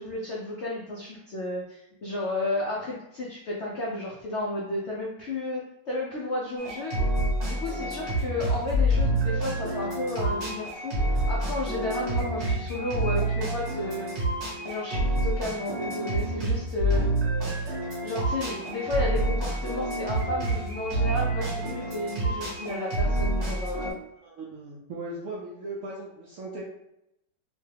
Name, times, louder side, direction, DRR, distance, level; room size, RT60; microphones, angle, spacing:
voice 1, 0.0-6.9 7.4-14.1 14.6-17.1 18.0-24.0, left 2 dB, 85° left, -4 dB, 0.6 m, -32 dB
sound 1, 6.6-23.9, right 1 dB, 45° right, 1.1 m, -28 dB
voice 2, 24.2-26.6, right 2 dB, 75° right, -4 dB, 0.7 m, -38 dB
3.1 x 2.2 x 3.3 m, 0.84 s
omnidirectional pair, 1.9 m